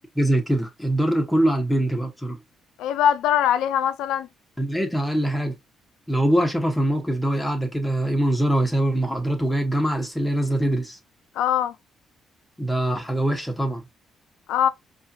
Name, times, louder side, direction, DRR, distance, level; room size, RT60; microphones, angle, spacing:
voice 1, 0.1-2.4 4.6-5.5 6.1-11.0 12.6-13.8, right 1 dB, 5° left, 1.1 m, -23 dB
voice 2, 2.8-4.3 11.3-11.8 14.5-14.7, left 10 dB, 90° left, 0.4 m, -21 dB
4.8 x 2.5 x 2.7 m
cardioid pair, 90°, 0 cm